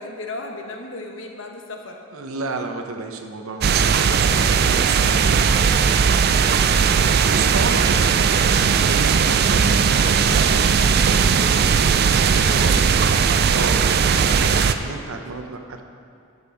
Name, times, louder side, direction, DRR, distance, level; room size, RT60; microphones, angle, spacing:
voice 1, 0.0-2.0 12.4-13.4 15.1-15.4, left 2 dB, 65° left, 2 dB, 1.0 m, -36 dB
voice 2, 2.1-12.8 13.5-15.8, right 3 dB, 80° right, 5 dB, 0.8 m, -32 dB
sound 1, 3.6-14.7, right 6 dB, 45° right, 0.3 m, -18 dB
9.7 x 6.7 x 5.0 m, 2.4 s
head